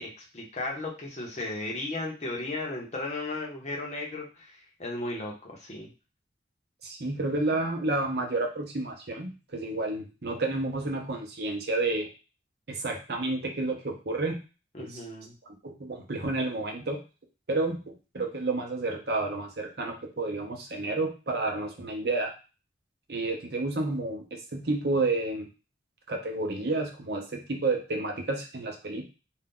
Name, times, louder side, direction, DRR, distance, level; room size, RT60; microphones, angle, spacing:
voice 1, 0.0-5.9 14.7-15.3, left 2 dB, 40° left, -1 dB, 0.8 m, -35 dB
voice 2, 6.8-12.1 12.7-14.4 14.8-15.0 15.6-17.0 17.5-22.3 23.1-25.5 26.1-29.0, right 2 dB, 60° right, 2 dB, 0.7 m, -30 dB
2.6 x 2.3 x 3.6 m, 0.32 s
head